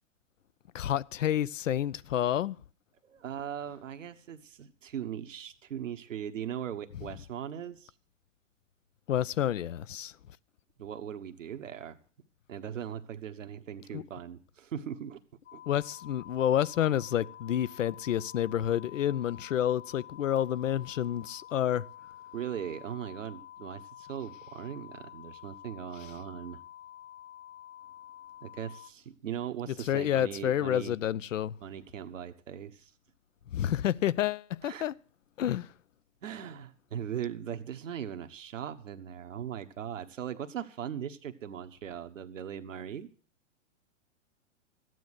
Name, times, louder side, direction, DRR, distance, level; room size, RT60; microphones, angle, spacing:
voice 1, 0.7-2.6 9.1-10.1 13.9-14.0 15.7-21.8 29.9-31.5 33.5-34.9 35.4-35.7, left 11 dB, 85° left, 0.7 m, -29 dB
voice 2, 3.0-7.9 10.8-12.0 12.5-15.2 15.5-15.6 22.3-26.6 28.4-31.0 31.6-32.9 34.6-34.9 36.2-43.1, right 9 dB, 85° right, 1.3 m, -39 dB
sound 1, 15.5-28.9, left 11 dB, 70° left, 1.0 m, -49 dB
14.0 x 9.4 x 8.0 m
hypercardioid pair, 115°, 37 cm